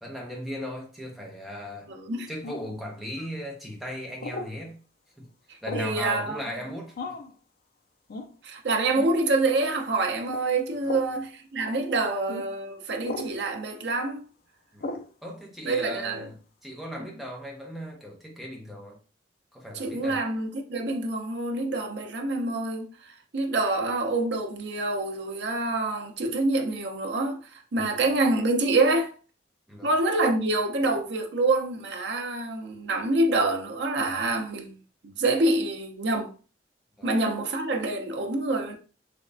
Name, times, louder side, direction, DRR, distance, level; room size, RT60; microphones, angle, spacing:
voice 1, 0.0-1.9 2.3-4.8 5.2-5.3 5.6-7.0 10.8-11.1 14.7-15.0 15.2-16.4 16.6-19.0 19.5-20.2 27.7-28.0 29.7-29.9 37.0-37.1, equal, ahead, 0.8 m, -37 dB
voice 2, 1.9-2.3 5.7-6.4 8.4-14.2 15.6-16.3 19.7-29.1 29.8-34.8 35.0-36.3 37.0-38.7, right 2 dB, 70° right, 0.6 m, -26 dB
sound 1, 2.4-2.8 4.2-4.5 5.6-6.0 6.9-7.3 8.1-8.3 8.9-9.2 10.2-10.4 10.8-11.1 12.3-12.4 13.0-13.3 14.8-15.1, left 2 dB, 55° left, 0.4 m, -36 dB
3.4 x 3.1 x 2.5 m
head